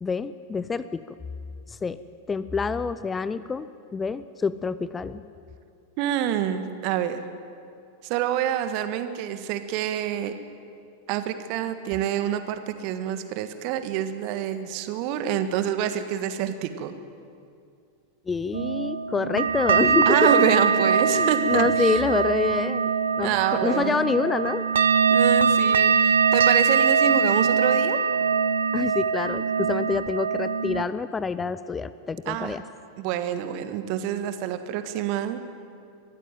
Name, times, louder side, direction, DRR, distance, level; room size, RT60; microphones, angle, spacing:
voice 1, 0.0-1.0 1.7-2.0 2.3-5.2 18.3-20.3 21.0-22.9 23.2-24.7 28.7-32.6, left 5 dB, 15° left, 15 dB, 0.6 m, -27 dB
voice 2, 6.0-7.2 8.0-10.3 11.1-16.9 20.1-21.9 23.2-24.0 25.1-28.0 32.3-32.5 33.0-35.4, right 10 dB, 45° right, 10 dB, 1.5 m, -27 dB
sound 1, 18.5-30.8, right 6 dB, 65° right, 0.9 m, -22 dB
23.0 x 14.5 x 9.0 m, 2.4 s
figure-of-eight pair, 90°, 0 cm